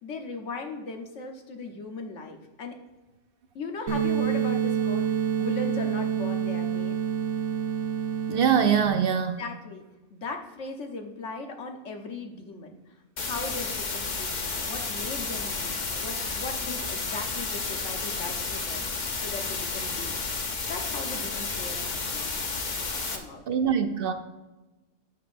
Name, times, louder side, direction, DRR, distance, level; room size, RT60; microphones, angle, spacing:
voice 1, 0.0-2.7 3.5-7.0 9.4-9.8 10.1-12.8 13.2-20.2 20.7-22.3 22.9-23.4, left 3 dB, 85° left, 3 dB, 1.4 m, -38 dB
sound 1, 3.9-8.9, right 8 dB, 75° right, 1.2 m, -27 dB
voice 2, 8.3-9.4 23.5-24.1, right 7 dB, 60° right, 8 dB, 0.7 m, -23 dB
sound 2, 13.2-23.2, left 4 dB, 45° left, 0.9 m, -31 dB
9.9 x 7.2 x 2.6 m, 1.1 s
omnidirectional pair, 1.2 m